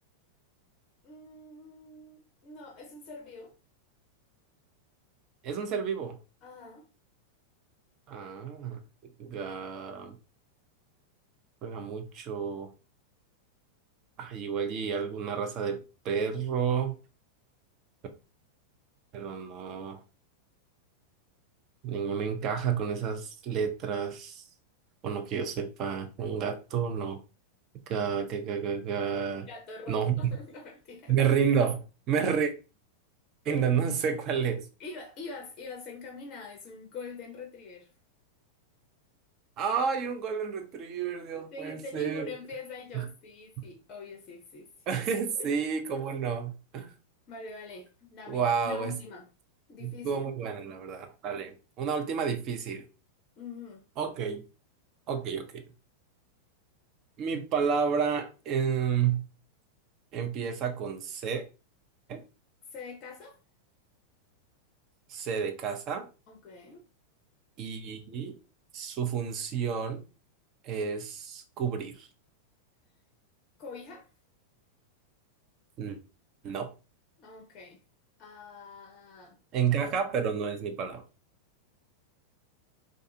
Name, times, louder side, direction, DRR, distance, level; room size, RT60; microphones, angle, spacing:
voice 1, 1.0-3.6 6.4-6.9 29.5-31.2 33.5-33.6 34.8-37.9 41.3-44.7 45.4-45.6 47.3-49.3 49.7-50.2 53.4-53.8 62.7-63.4 66.3-66.9 73.6-74.1 77.2-77.8 78.2-79.4, left 3 dB, 35° left, 0.5 m, -44 dB
voice 2, 5.4-6.2 8.1-8.8 9.2-10.2 11.6-12.7 14.2-17.0 19.1-20.0 21.8-24.4 25.0-27.2 27.9-29.5 29.9-30.3 31.1-32.5 33.5-34.7 39.6-42.3 42.9-43.1 43.6-43.7 44.9-46.9 48.3-49.0 49.8-52.9 54.0-54.4 55.1-55.6 57.2-59.3 60.1-61.4 62.1-62.2 65.1-66.1 67.6-68.4 68.7-70.0 70.6-72.1 75.8-76.0 76.4-76.7 79.5-81.0, right 7 dB, 35° right, 0.5 m, -30 dB
2.4 x 2.4 x 2.7 m
figure-of-eight pair, 90°, 0 cm